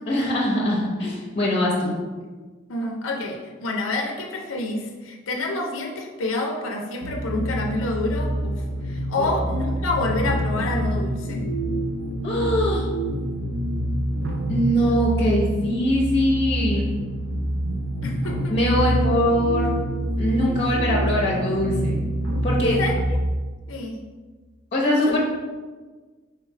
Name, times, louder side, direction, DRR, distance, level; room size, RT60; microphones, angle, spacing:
voice 1, 0.1-1.9 9.2-9.3 12.2-12.8 14.5-16.9 18.5-19.7 20.2-22.0 22.4-22.8 24.7-25.2, equal, 30° left, -3 dB, 0.8 m, -22 dB
voice 2, 2.7-11.5 18.0-18.6 22.6-23.0 23.7-24.0 25.1-25.2, left 2 dB, 85° left, 2 dB, 0.5 m, -28 dB
sound 1, 7.0-23.1, right 1 dB, 80° right, 0.6 m, -26 dB
3.5 x 3.1 x 4.6 m, 1.4 s
head